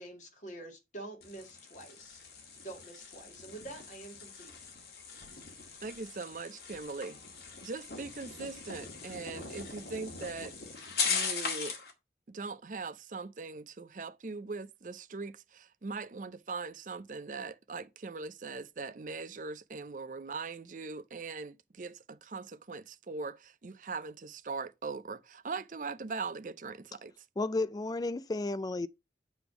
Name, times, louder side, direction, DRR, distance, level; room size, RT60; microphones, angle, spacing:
voice 1, 0.0-2.2 2.6-4.5, right 2 dB, 45° left, 2.3 m, -47 dB
sound 1, 1.2-11.9, left 5 dB, 60° left, 1.9 m, -39 dB
voice 2, 5.8-7.2 7.6-10.5 11.0-11.8 12.3-27.2, right 4 dB, 45° right, 0.5 m, -41 dB
voice 3, 27.4-28.9, left 2 dB, 20° left, 0.3 m, -32 dB
8.0 x 3.4 x 6.0 m
head